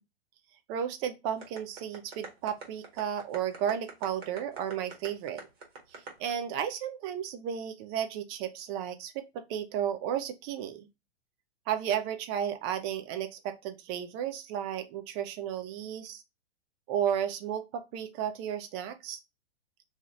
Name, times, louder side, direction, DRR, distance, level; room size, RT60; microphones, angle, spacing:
voice 1, 0.7-5.5 5.9-10.9 11.7-16.2 16.9-19.2, right 9 dB, 25° right, 0.3 m, -33 dB
sound 1, 1.4-6.3, right 4 dB, 60° right, 1.3 m, -44 dB
2.7 x 2.4 x 3.0 m
hypercardioid pair, 110°, 34 cm